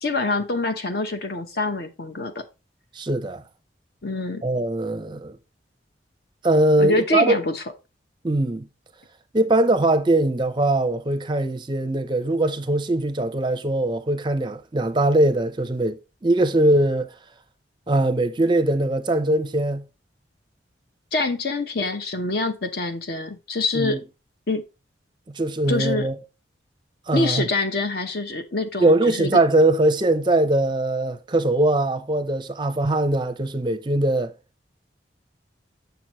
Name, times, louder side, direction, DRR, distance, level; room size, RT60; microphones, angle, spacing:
voice 1, 0.0-2.4 4.0-4.4 6.8-7.6 21.1-24.0 24.5-24.6 25.7-26.1 27.1-29.3, left 2 dB, 55° left, 0.9 m, -25 dB
voice 2, 2.9-3.4 4.4-5.4 6.4-7.4 8.2-8.7 9.3-17.1 17.9-19.8 23.7-24.0 25.3-26.2 27.1-27.5 28.8-34.3, right 1 dB, 25° right, 0.5 m, -21 dB
6.9 x 6.0 x 3.0 m
head